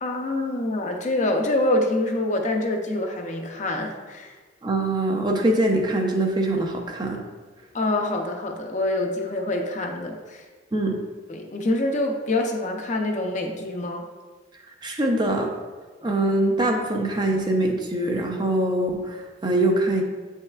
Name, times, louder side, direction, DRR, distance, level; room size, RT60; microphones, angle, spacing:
voice 1, 0.0-4.3 7.7-10.5 11.3-14.0, left 2 dB, 35° left, 3 dB, 0.6 m, -26 dB
voice 2, 4.6-7.2 10.7-11.0 14.7-15.5 16.0-20.0, right 1 dB, 20° right, 2 dB, 0.6 m, -23 dB
7.9 x 5.5 x 2.4 m, 1.4 s
head